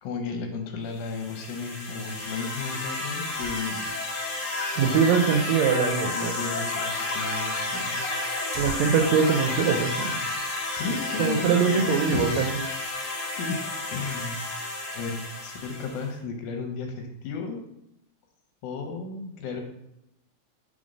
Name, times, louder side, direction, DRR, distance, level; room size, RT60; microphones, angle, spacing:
voice 1, 0.0-3.9 4.4-4.8 6.2-8.0 10.7-12.5 13.4-13.6 13.9-14.4 14.9-17.6 18.6-19.6, left 4 dB, 85° left, 4 dB, 2.3 m, -33 dB
sound 1, 1.0-16.1, left 2 dB, 70° left, 2.1 m, -31 dB
sound 2, 3.4-4.1 4.5-4.6 4.8-4.9 5.6-5.7 6.6-6.7 7.0-7.1 7.9-8.0 8.3-10.9 11.2-11.4 11.8-12.0 12.4-13.0, right 1 dB, 65° right, 1.5 m, -45 dB
voice 2, 4.8-6.3 8.6-10.3 11.2-12.6, right 6 dB, 80° right, 5 dB, 1.6 m, -23 dB
5.0 x 3.6 x 5.2 m, 0.82 s
omnidirectional pair, 3.4 m